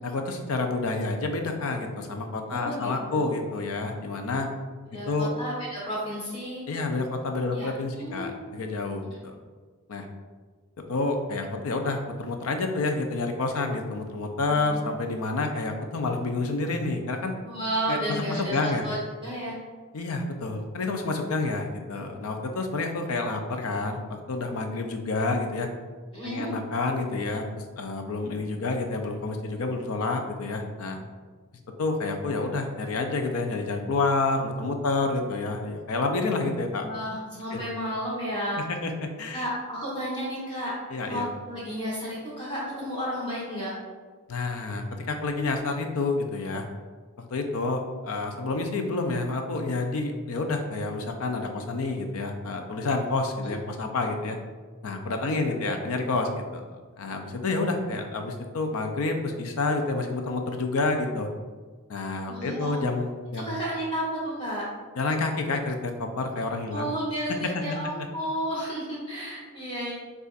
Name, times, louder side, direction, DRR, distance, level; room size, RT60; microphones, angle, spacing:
voice 1, 0.0-4.5 5.1-5.3 6.7-9.3 9.9-10.1 10.9-17.3 17.9-18.9 19.9-25.7 26.2-27.4 27.8-31.0 31.8-36.9 37.5-37.6 38.6-39.5 40.9-41.2 44.3-46.7 47.2-54.4 54.8-56.6 57.0-61.3 61.9-63.5 65.0-66.9 67.3-67.8, left 3 dB, 70° left, 4 dB, 0.5 m, -29 dB
voice 2, 2.5-3.3 4.9-6.6 7.5-7.7 8.0-8.4 14.5-14.8 17.4-19.5 26.1-26.5 36.8-38.6 39.3-40.7 41.1-43.7 62.3-62.8 63.4-64.6 66.7-69.9, equal, 20° left, -7 dB, 1.4 m, -32 dB
6.6 x 2.4 x 2.5 m, 1.4 s
head